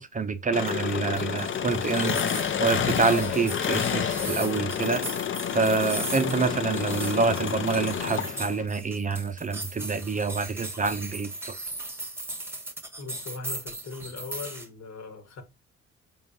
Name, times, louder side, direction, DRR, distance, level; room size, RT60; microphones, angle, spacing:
voice 1, 0.0-5.1 5.5-11.5, right 4 dB, 25° right, 0.5 m, -27 dB
Engine, 0.5-8.7, left 8 dB, 40° left, 0.6 m, -29 dB
sound 1, 0.7-14.7, right 1 dB, 5° right, 1.0 m, -38 dB
voice 2, 13.0-15.4, left 4 dB, 60° left, 1.5 m, -39 dB
5.1 x 3.7 x 2.7 m
cardioid pair, 90°, 30 cm